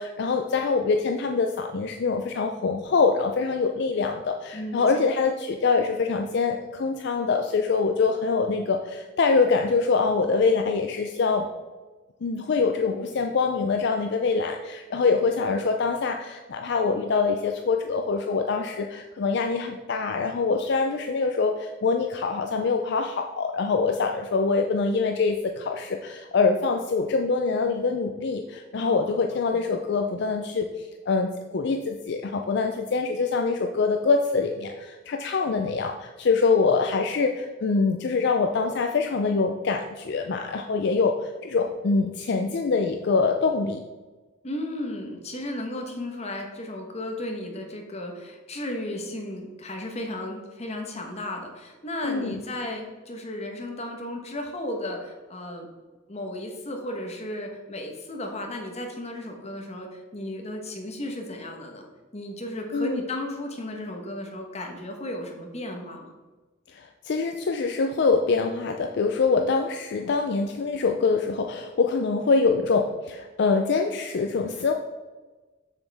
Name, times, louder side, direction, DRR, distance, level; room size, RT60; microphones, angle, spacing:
voice 1, 0.0-11.5 12.2-43.8 52.0-52.4 62.7-63.0 66.7-74.7, left 4 dB, 60° left, 4 dB, 0.4 m, -24 dB
voice 2, 4.5-5.1 28.8-29.3 44.4-55.7 56.1-61.9 62.1-66.1, left 1 dB, 35° left, 2 dB, 1.1 m, -34 dB
6.9 x 6.3 x 3.4 m, 1.3 s
head